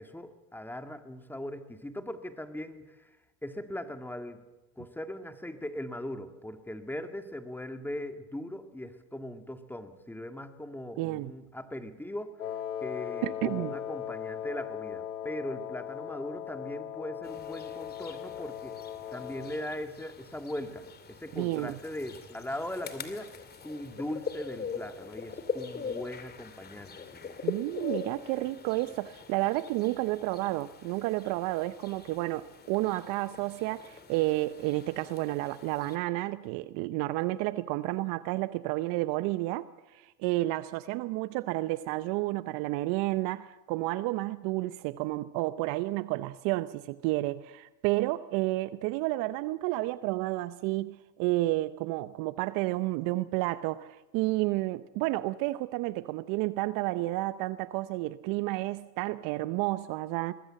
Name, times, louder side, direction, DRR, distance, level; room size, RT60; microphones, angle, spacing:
voice 1, 0.0-3.1 3.4-4.4 4.8-12.3 12.8-18.7 19.1-20.8 21.1-23.3 23.6-27.4, left 1 dB, 5° left, 2.0 m, -39 dB
voice 2, 11.0-11.3 13.2-13.7 21.4-21.8 27.4-60.3, right 18 dB, 45° right, 0.8 m, -31 dB
Wind instrument woodwind instrument, 12.4-19.7, left 10 dB, 80° left, 2.9 m, -38 dB
sound 1, 17.2-36.0, left 5 dB, 20° left, 2.5 m, -42 dB
23.5 x 20.5 x 7.7 m
hypercardioid pair, 105°, 46 cm